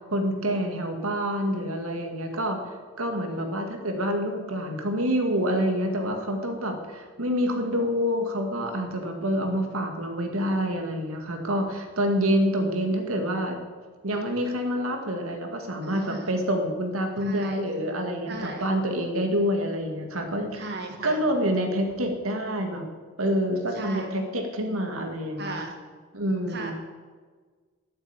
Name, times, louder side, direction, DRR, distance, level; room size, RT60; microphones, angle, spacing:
voice 1, 0.1-2.6 3.0-13.6 14.0-20.7 21.0-22.9 23.2-25.6 26.1-26.7, equal, 85° right, 4 dB, 2.1 m, -27 dB
voice 2, 3.3-3.7 15.8-16.3 17.2-17.6 18.3-18.7 20.5-21.2 23.7-24.1 25.4-25.7 26.5-26.7, right 2 dB, 50° right, 3 dB, 2.0 m, -37 dB
11.5 x 9.0 x 8.4 m, 1.5 s
head